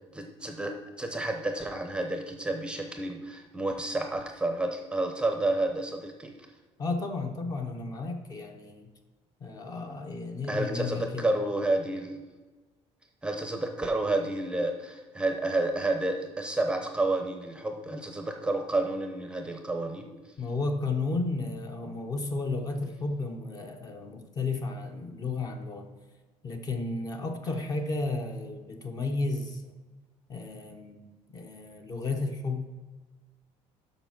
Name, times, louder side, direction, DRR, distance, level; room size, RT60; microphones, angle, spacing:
voice 1, 0.1-6.3 10.5-12.2 13.2-20.1 27.5-27.6, right 2 dB, 10° right, 4 dB, 0.7 m, -30 dB
voice 2, 6.8-8.9 9.4-11.3 20.4-25.9 26.4-29.7 30.3-32.6, left 3 dB, 30° left, 5 dB, 0.9 m, -33 dB
6.9 x 5.8 x 5.9 m, 1.3 s
cardioid pair, 150°, 12 cm